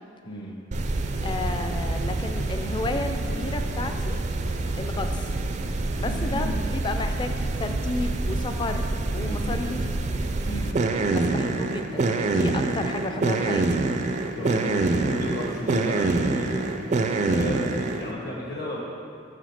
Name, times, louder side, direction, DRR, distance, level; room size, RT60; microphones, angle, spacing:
sound 1, 0.7-18.1, right 2 dB, 40° right, 0.4 m, -26 dB
voice 1, 1.2-4.2 4.7-5.4 6.0-9.9 11.1-13.8, left 3 dB, 25° left, 6 dB, 0.4 m, -32 dB
voice 2, 6.0-6.6 9.2-9.7 10.5-10.7 14.3-16.7 17.2-18.8, left 1 dB, 60° left, -4 dB, 1.1 m, -33 dB
5.9 x 5.0 x 5.8 m, 2.5 s
head